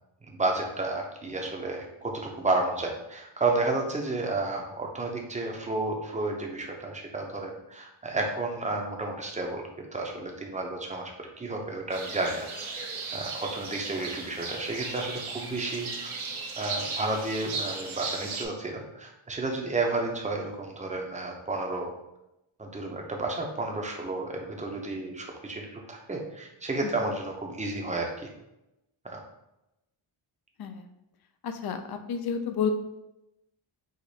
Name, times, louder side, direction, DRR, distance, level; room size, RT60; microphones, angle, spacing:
voice 1, 0.2-12.5 13.1-16.1 16.6-21.9 22.6-28.3 29.0-29.2, right 2 dB, 15° right, 1 dB, 0.7 m, -31 dB
sound 1, 11.9-18.4, right 4 dB, 70° right, 1.1 m, -36 dB
voice 2, 31.4-32.7, left 7 dB, 50° left, 7 dB, 0.6 m, -31 dB
5.0 x 2.6 x 4.0 m, 0.89 s
wide cardioid pair, 130°, 50 cm